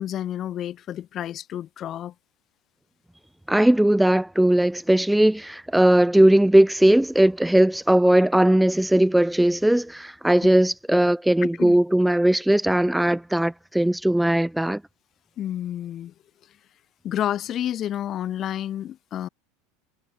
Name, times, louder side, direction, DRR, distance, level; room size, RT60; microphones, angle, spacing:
voice 1, 0.0-2.1 10.9-11.0 11.6-11.8 15.4-16.1 17.0-19.3, left 11 dB, 40° left, 0.6 m, -30 dB
voice 2, 3.5-14.8, right 1 dB, 5° right, 0.7 m, -19 dB
supercardioid pair, 115°, 0 cm